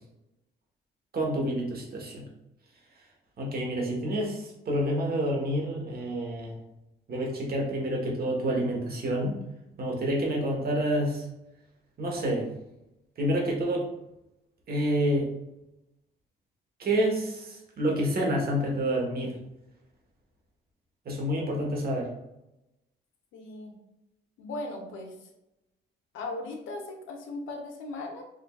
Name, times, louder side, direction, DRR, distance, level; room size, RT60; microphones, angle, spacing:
voice 1, 1.1-2.3 3.4-6.5 7.1-9.4 9.8-11.2 12.0-12.5 13.2-13.9 14.7-15.3 16.8-19.3 21.0-22.1, equal, 50° right, -1 dB, 1.2 m, -28 dB
voice 2, 23.3-23.7 24.4-25.3 26.1-28.2, left 2 dB, 80° left, 2 dB, 0.8 m, -38 dB
4.9 x 2.6 x 2.3 m, 0.90 s
cardioid pair, 90°, 20 cm